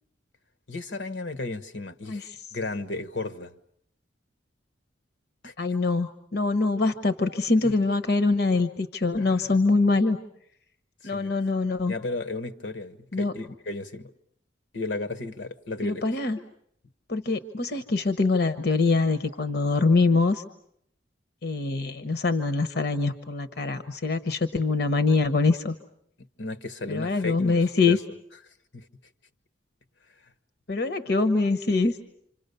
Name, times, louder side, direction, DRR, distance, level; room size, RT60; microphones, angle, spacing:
voice 1, 0.7-3.5 5.4-5.5 7.6-7.7 9.2-9.4 11.0-11.4 11.9-14.1 14.7-16.0 26.2-28.0 28.7-28.9, left 2 dB, 80° left, 8 dB, 1.3 m, -34 dB
voice 2, 5.6-10.2 11.0-11.9 13.1-13.3 15.8-16.4 17.1-20.4 21.4-25.7 26.9-28.0 30.7-32.0, left 3 dB, 60° left, 11 dB, 1.0 m, -24 dB
27.5 x 26.5 x 6.8 m, 0.71 s
head